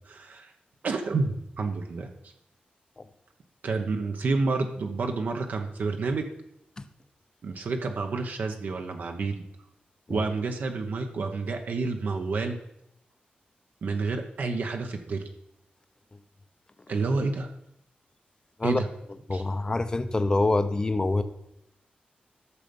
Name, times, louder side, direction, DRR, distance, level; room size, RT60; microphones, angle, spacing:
voice 1, 0.1-0.5 0.8-2.1 3.6-6.3 7.4-9.4 10.1-12.6 13.8-15.2 16.9-17.5 18.6-18.9 19.3-19.4, right 3 dB, 65° right, 4 dB, 1.0 m, -29 dB
voice 2, 19.3-21.2, left 2 dB, 25° left, 10 dB, 0.7 m, -25 dB
13.0 x 6.7 x 5.3 m, 0.79 s
wide cardioid pair, 155°, 3 cm